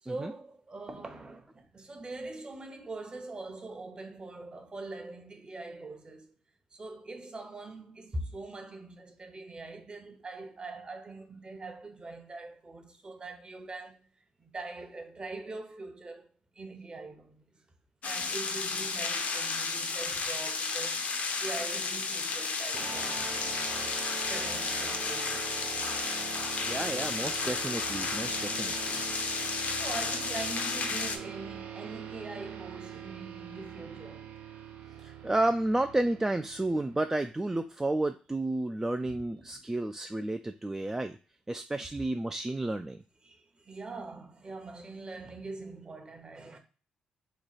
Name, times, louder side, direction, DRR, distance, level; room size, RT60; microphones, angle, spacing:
voice 1, 0.0-6.3 6.7-14.1 14.4-16.3 16.5-17.4 18.0-21.0 21.4-23.4 24.3-25.8 29.7-34.3 39.0-39.6 43.2-46.6, right 2 dB, 35° right, 0.9 m, -43 dB
sound 1, 18.0-31.2, left 4 dB, 55° left, 0.6 m, -33 dB
sound 2, 22.7-37.5, right 8 dB, 70° right, 0.6 m, -43 dB
voice 2, 26.6-29.0 35.0-41.2 41.5-43.0, right 2 dB, 15° right, 0.3 m, -31 dB
3.1 x 2.2 x 4.0 m
supercardioid pair, 60°, 3 cm